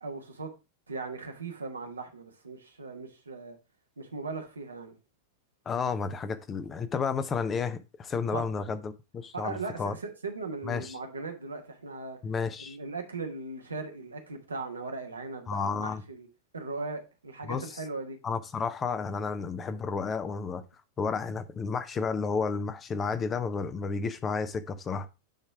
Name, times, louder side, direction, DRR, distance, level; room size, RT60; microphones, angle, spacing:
voice 1, 0.0-0.5 0.9-3.6 4.0-5.0 8.3-8.5 9.3-12.2 12.6-16.3 16.5-18.2, right 3 dB, 75° right, 1.3 m, -38 dB
voice 2, 5.7-9.9 10.6-10.9 12.2-12.8 15.5-16.0 17.5-17.6 18.2-20.6 21.0-25.1, left 5 dB, 20° left, 0.7 m, -31 dB
9.1 x 3.3 x 4.7 m
figure-of-eight pair, 90°, 0 cm